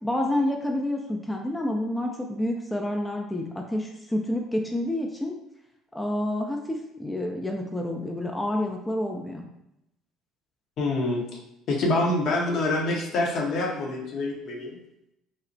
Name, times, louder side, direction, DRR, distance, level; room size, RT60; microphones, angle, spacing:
voice 1, 0.0-5.4 5.9-9.5, left 1 dB, 10° left, 1 dB, 0.3 m, -28 dB
voice 2, 10.8-11.2 11.7-14.8, left 2 dB, 55° left, -1 dB, 0.6 m, -26 dB
2.9 x 2.0 x 2.6 m, 0.84 s
hypercardioid pair, 60°, 0 cm